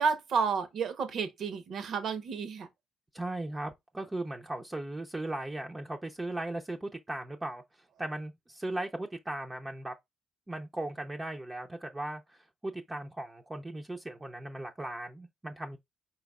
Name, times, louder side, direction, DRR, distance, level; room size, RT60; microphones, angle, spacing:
voice 1, 0.0-2.7, right 5 dB, 65° right, 0.9 m, -31 dB
voice 2, 3.1-7.6 8.0-10.0 10.5-15.8, right 1 dB, 20° right, 0.6 m, -37 dB
4.5 x 4.1 x 2.3 m
cardioid pair, 90°, 0 cm